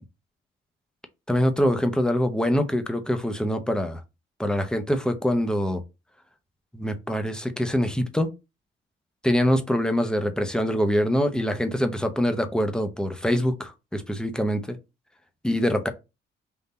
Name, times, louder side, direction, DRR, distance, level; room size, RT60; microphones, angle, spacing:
voice 1, 1.3-4.0 4.4-5.8 6.7-8.3 9.2-14.8 15.4-15.9, equal, 5° left, 0.8 m, -24 dB
3.8 x 2.7 x 4.1 m
cardioid pair, 90°, 20 cm